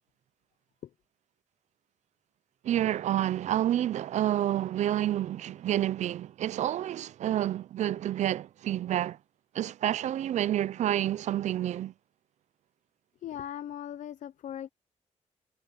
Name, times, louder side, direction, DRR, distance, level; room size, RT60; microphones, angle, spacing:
voice 1, 2.6-9.2 9.5-11.9, right 12 dB, 70° right, 0.4 m, -29 dB
voice 2, 13.2-14.7, left 10 dB, 85° left, 0.7 m, -39 dB
wide cardioid pair, 165°, 12 cm